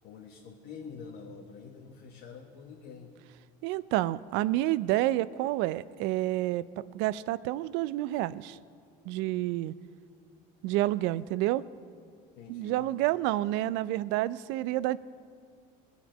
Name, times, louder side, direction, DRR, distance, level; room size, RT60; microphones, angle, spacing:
voice 1, 0.0-3.1 12.3-12.9, left 5 dB, 70° left, 0 dB, 1.4 m, -46 dB
voice 2, 3.6-8.6 9.1-9.7 10.6-11.6 12.5-15.0, right 16 dB, 80° right, 18 dB, 0.5 m, -29 dB
21.5 x 7.2 x 5.1 m, 2.2 s
supercardioid pair, 95°, 19 cm